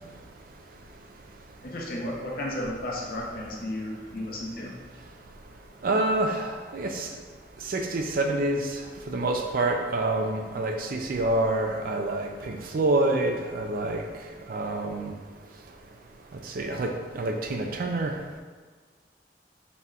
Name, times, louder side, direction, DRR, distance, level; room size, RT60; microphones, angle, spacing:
voice 1, 1.6-4.8, left 1 dB, 55° left, -1 dB, 0.7 m, -33 dB
voice 2, 5.8-7.1 7.7-8.7 9.1-14.0 14.5-15.1 16.6-16.9 17.1-18.1, right 2 dB, 50° right, 3 dB, 0.4 m, -27 dB
4.2 x 2.2 x 3.6 m, 1.5 s
head